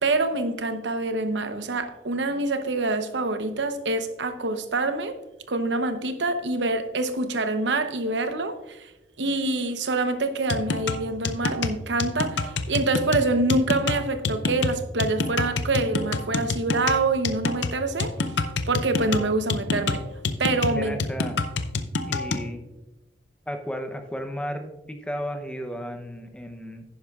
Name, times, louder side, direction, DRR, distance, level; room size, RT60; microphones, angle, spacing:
voice 1, 0.0-5.2 5.5-8.9 9.2-18.3 18.7-20.0 20.4-21.0, right 2 dB, 85° right, 0.8 m, -26 dB
sound 1, 10.5-22.5, left 3 dB, 90° left, 0.6 m, -27 dB
voice 2, 20.7-21.4 22.0-22.6 23.5-26.8, equal, 5° left, 0.7 m, -34 dB
10.5 x 10.5 x 2.4 m
head